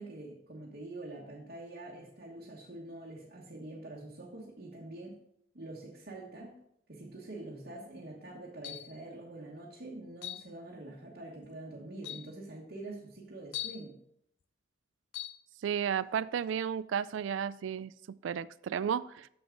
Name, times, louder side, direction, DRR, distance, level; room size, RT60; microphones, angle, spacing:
voice 1, 0.0-5.2 5.5-6.6 6.9-14.0, right 2 dB, 55° right, -4 dB, 1.2 m, -45 dB
sound 1, 8.6-9.0 10.2-10.5 11.4-11.5 12.0-12.3 13.5-13.9 15.1-15.4, left 13 dB, 65° left, 0.4 m, -40 dB
voice 2, 15.6-19.3, right 8 dB, 85° right, 19 dB, 0.3 m, -33 dB
7.1 x 6.8 x 3.8 m, 0.73 s
head